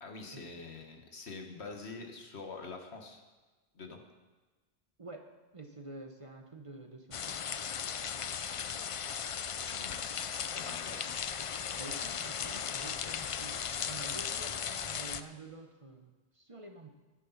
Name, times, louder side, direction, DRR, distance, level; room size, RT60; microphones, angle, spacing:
voice 1, 0.0-3.2 3.8-4.0 9.7-10.1 10.4-11.1, left 4 dB, 80° left, 3 dB, 1.7 m, -45 dB
voice 2, 5.0-7.6 11.7-13.6 13.8-16.9, right 2 dB, 35° right, 5 dB, 0.9 m, -49 dB
sound 1, 7.1-15.2, left 7 dB, 60° left, 0.3 m, -37 dB
12.0 x 10.0 x 5.7 m, 1.2 s
omnidirectional pair, 1.1 m